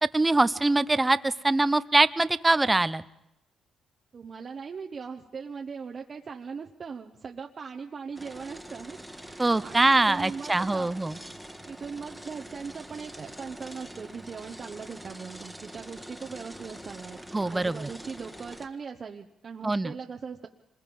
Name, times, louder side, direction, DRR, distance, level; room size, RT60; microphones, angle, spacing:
voice 1, 0.0-3.0 9.4-11.2 17.3-17.9 19.6-19.9, right 2 dB, 15° right, 15 dB, 0.7 m, -23 dB
voice 2, 4.1-10.9 11.7-20.5, right 5 dB, 45° right, 3 dB, 1.1 m, -40 dB
sound 1, 8.2-18.7, equal, ahead, 1.6 m, -45 dB
26.5 x 21.0 x 5.4 m, 0.87 s
cardioid pair, 90°, 0 cm